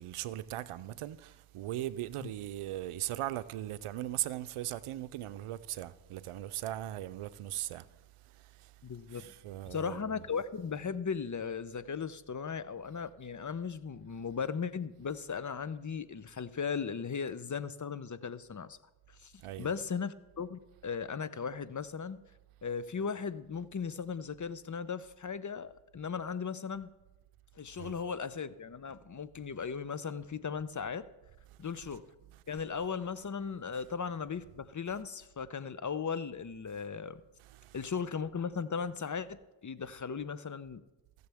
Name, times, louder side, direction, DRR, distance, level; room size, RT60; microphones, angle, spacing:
voice 1, 0.0-10.2 19.4-19.7 27.7-28.0 31.5-31.9 32.3-32.4 33.7-33.8 37.4-37.8, right 14 dB, 80° right, 0.6 m, -39 dB
voice 2, 8.8-9.3 9.7-18.8 19.1-19.3 19.6-22.2 22.6-26.9 27.6-31.0 31.6-32.0 32.5-37.2 37.7-40.8, left 6 dB, 35° left, 0.8 m, -37 dB
18.5 x 6.8 x 3.5 m
supercardioid pair, 40°, 50 cm